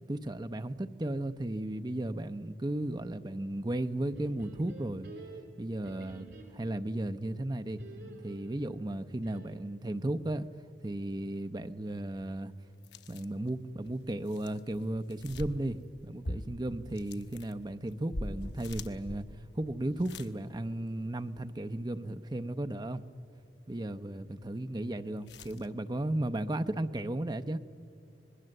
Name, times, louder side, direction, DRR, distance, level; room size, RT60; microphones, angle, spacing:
voice 1, 0.1-5.1 5.6-6.3 6.5-7.8 8.2-10.5 10.8-12.5 13.1-19.3 19.6-23.0 23.7-27.6, right 1 dB, 25° right, 10 dB, 0.7 m, -35 dB
sound 1, 4.1-6.9 7.8-9.8, right 2 dB, 65° right, 3.1 m, -50 dB
sound 2, 12.8-13.5 13.9-15.9 16.2-20.3 20.7-20.8 25.3-25.7, left 1 dB, 70° left, 1.0 m, -42 dB
26.5 x 20.0 x 7.8 m, 2.5 s
head